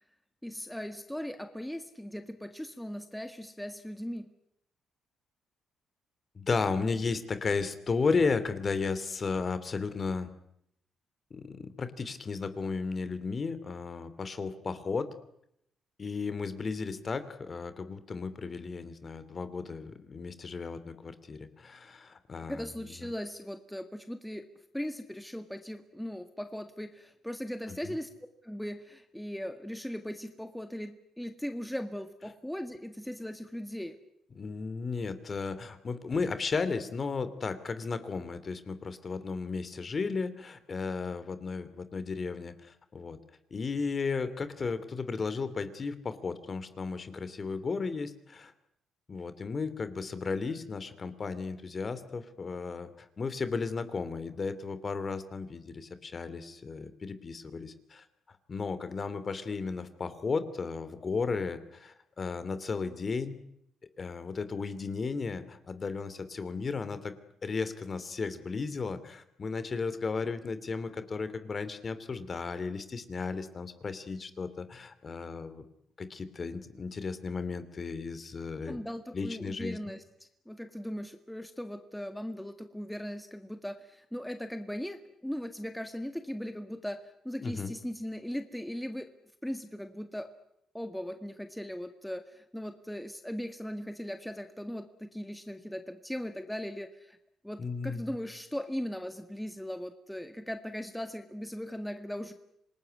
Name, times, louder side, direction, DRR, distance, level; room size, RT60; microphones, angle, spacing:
voice 1, 0.4-4.3 22.5-24.5 24.7-28.1 28.4-34.0 78.7-89.1 89.4-90.3 90.7-97.2 97.4-102.3, equal, 5° left, 7 dB, 1.8 m, -38 dB
voice 2, 6.3-10.3 11.3-15.1 16.0-22.7 23.0-23.1 27.7-27.9 34.3-43.2 43.5-48.5 49.1-58.0 58.5-63.4 64.0-67.1 67.4-75.6 76.0-78.8 79.1-79.8 87.4-87.7 97.6-98.1, left 4 dB, 40° left, 13 dB, 2.8 m, -34 dB
26.5 x 20.0 x 9.6 m, 0.77 s
cardioid pair, 90°, 0 cm